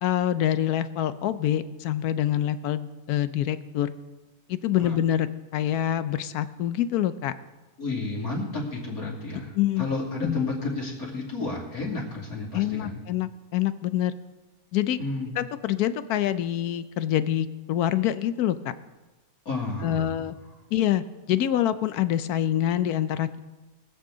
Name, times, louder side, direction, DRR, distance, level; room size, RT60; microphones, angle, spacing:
voice 1, 0.0-3.9 4.5-5.3 5.5-7.3 9.5-9.9 10.2-10.4 12.5-14.1 14.7-15.0 15.4-18.7 19.8-20.4 20.7-23.4, left 11 dB, 70° left, 13 dB, 1.0 m, -26 dB
voice 2, 7.8-13.0 15.0-15.3 19.4-20.2, left 3 dB, 50° left, -3 dB, 3.1 m, -31 dB
22.5 x 8.0 x 3.8 m, 1.1 s
omnidirectional pair, 1.9 m